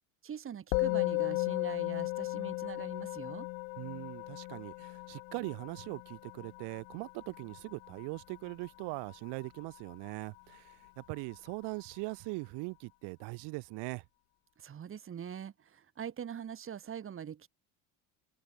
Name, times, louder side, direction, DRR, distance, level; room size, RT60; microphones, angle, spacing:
voice 1, 0.2-3.5 14.6-17.5, right 8 dB, 30° right, 1.3 m, -43 dB
Musical instrument, 0.7-10.2, left 32 dB, 85° left, 0.9 m, -36 dB
voice 2, 3.8-14.0, right 28 dB, 75° right, 2.9 m, -41 dB
supercardioid pair, 100°, 41 cm